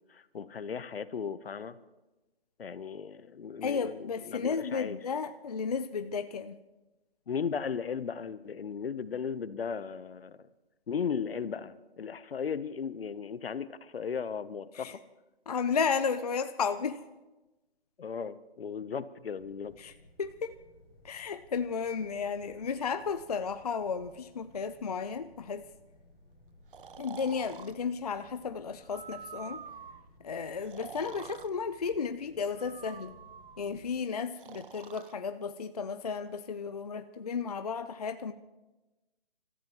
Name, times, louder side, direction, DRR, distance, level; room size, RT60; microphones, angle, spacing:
voice 1, 0.1-1.8 2.6-4.0 4.3-5.0 7.3-10.4 10.9-14.9 18.0-19.7, left 6 dB, 70° left, 15 dB, 0.9 m, -36 dB
voice 2, 3.6-6.6 14.7-15.0 15.5-17.0 19.8-19.9 20.2-20.5 21.0-25.7 27.0-29.6 30.2-33.1 33.6-38.3, left 5 dB, 40° left, 10 dB, 0.5 m, -33 dB
sound 1, 19.3-34.0, left 1 dB, 10° left, 6.2 m, -59 dB
Breathing, 26.7-27.7 28.8-30.1 30.6-31.5 32.5-33.7 34.4-35.1, right 7 dB, 55° right, 0.7 m, -47 dB
28.0 x 14.0 x 3.0 m, 1.1 s
hypercardioid pair, 165°, 31 cm